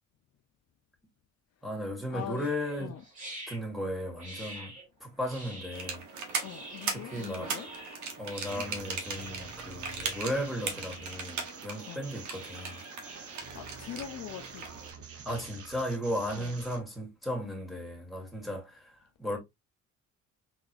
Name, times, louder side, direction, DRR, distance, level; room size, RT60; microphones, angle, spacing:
voice 1, 1.6-3.0 3.5-4.7 5.0-6.0 6.9-7.5 8.2-12.8 15.2-18.9 19.2-19.4, equal, ahead, 1.7 m, -35 dB
voice 2, 2.1-2.5 2.8-3.0 6.4-7.7 11.9-12.1 13.5-14.7 16.4-16.6, left 10 dB, 60° left, 0.5 m, -42 dB
sound 1, 2.4-13.3, right 1 dB, 25° right, 1.9 m, -48 dB
sound 2, 5.7-14.9, right 5 dB, 70° right, 1.1 m, -39 dB
sound 3, 8.5-16.8, right 5 dB, 50° right, 1.0 m, -47 dB
3.7 x 3.0 x 2.4 m
cardioid pair, 90°, 30 cm